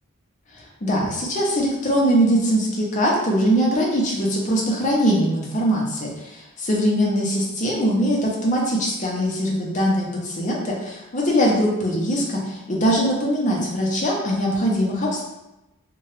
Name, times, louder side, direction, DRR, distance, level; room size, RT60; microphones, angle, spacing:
voice 1, 0.8-15.2, equal, 35° left, -2 dB, 0.6 m, -21 dB
2.8 x 2.2 x 3.1 m, 0.97 s
head